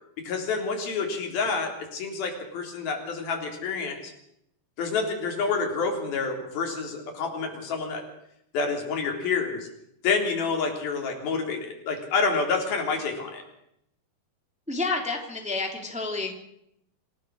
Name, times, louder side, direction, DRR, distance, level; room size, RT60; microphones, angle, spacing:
voice 1, 0.2-4.1 4.8-8.1 8.5-9.7 10.0-13.4, left 4 dB, 80° left, 3 dB, 5.4 m, -28 dB
voice 2, 14.7-16.3, left 3 dB, ahead, 2 dB, 2.8 m, -29 dB
27.0 x 17.0 x 6.5 m, 0.76 s
omnidirectional pair, 4.2 m